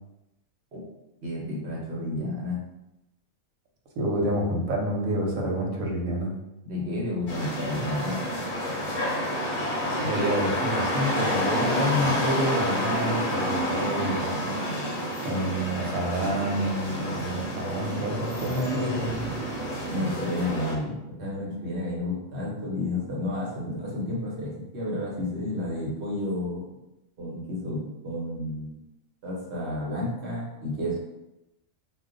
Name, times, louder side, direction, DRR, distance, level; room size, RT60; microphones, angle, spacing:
voice 1, 1.2-2.6 6.6-8.2 19.9-26.6 27.2-28.8 29.2-31.0, left 1 dB, 60° right, -4 dB, 1.0 m, -31 dB
voice 2, 4.0-6.3 10.0-14.5 15.2-19.2, equal, 85° right, 0 dB, 1.1 m, -28 dB
sound 1, 7.3-20.7, equal, 45° left, 0.7 m, -29 dB
2.4 x 2.2 x 3.7 m, 0.92 s
omnidirectional pair, 1.4 m